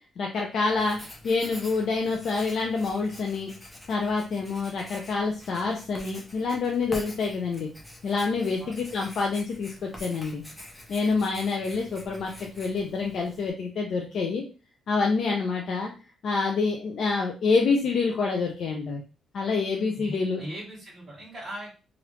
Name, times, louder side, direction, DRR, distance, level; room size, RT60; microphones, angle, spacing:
voice 1, 0.2-1.0 1.2-3.5 3.9-7.7 8.0-10.4 10.9-14.4 14.9-15.9 16.2-19.0 19.3-20.4, left 4 dB, 50° left, 0 dB, 0.5 m, -27 dB
Writing, 0.7-13.5, left 1 dB, 5° left, 0.6 m, -46 dB
voice 2, 20.0-21.8, equal, 30° right, -10 dB, 1.3 m, -39 dB
3.3 x 2.4 x 3.0 m, 0.34 s
cardioid pair, 175°, 0 cm